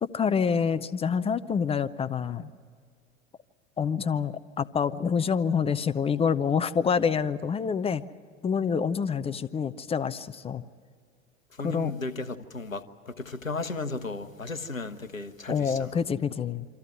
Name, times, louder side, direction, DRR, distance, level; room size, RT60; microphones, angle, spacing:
voice 1, 0.0-2.5 3.8-8.0 8.4-10.6 11.6-11.9 15.5-16.7, left 6 dB, 15° left, 0.5 m, -27 dB
voice 2, 11.5-16.0, left 3 dB, 90° left, 1.0 m, -35 dB
25.5 x 14.0 x 9.8 m
figure-of-eight pair, 80°, 39 cm